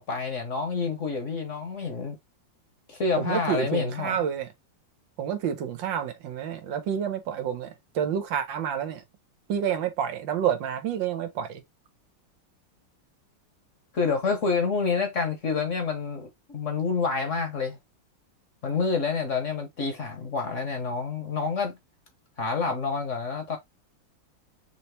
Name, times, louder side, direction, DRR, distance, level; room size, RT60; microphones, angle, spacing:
voice 1, 0.0-2.2 2.9-4.1 13.9-17.8 18.6-21.8 22.4-23.6, left 4 dB, 45° left, 1.2 m, -28 dB
voice 2, 3.2-4.5 5.2-9.0 9.5-11.6, right 8 dB, 80° right, 1.5 m, -29 dB
5.7 x 2.8 x 3.0 m
omnidirectional pair, 2.1 m